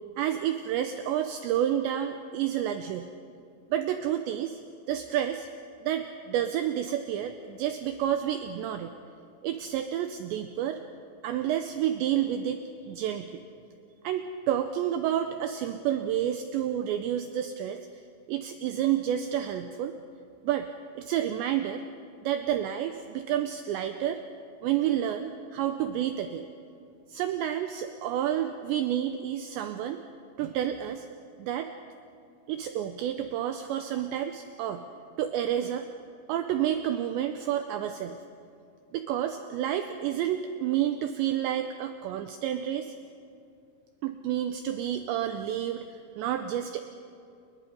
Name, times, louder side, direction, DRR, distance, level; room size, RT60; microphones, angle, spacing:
voice 1, 0.2-3.1 3.7-4.6 4.9-5.5 5.8-8.9 9.4-10.8 11.2-13.4 14.0-17.8 18.3-20.0 20.4-20.7 21.0-21.8 22.2-24.2 24.6-26.5 27.1-30.0 30.4-31.1 31.4-31.7 32.5-34.8 35.2-35.9 36.3-38.2 38.9-42.9 44.0-46.8, right 10 dB, 85° right, 8 dB, 2.6 m, -30 dB
30.0 x 21.0 x 5.4 m, 2.5 s
omnidirectional pair, 5.9 m